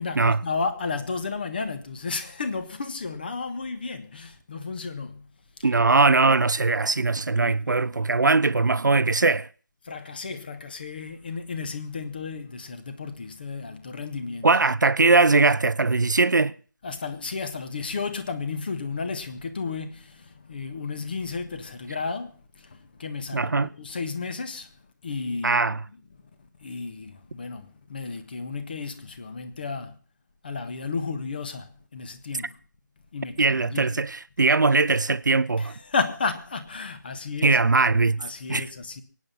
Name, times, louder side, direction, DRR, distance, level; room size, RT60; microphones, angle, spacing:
voice 1, 0.0-5.3 7.3-7.7 9.8-14.5 16.8-24.7 25.0-25.7 26.6-30.0 30.4-32.6 33.1-33.9 35.6-37.6 38.2-39.0, left 4 dB, 30° left, 1.5 m, -33 dB
voice 2, 5.6-9.5 14.4-16.5 23.3-23.7 25.4-25.8 33.4-35.7 37.4-38.7, right 3 dB, 70° right, 0.8 m, -21 dB
23.5 x 9.6 x 5.5 m
figure-of-eight pair, 170°, 11 cm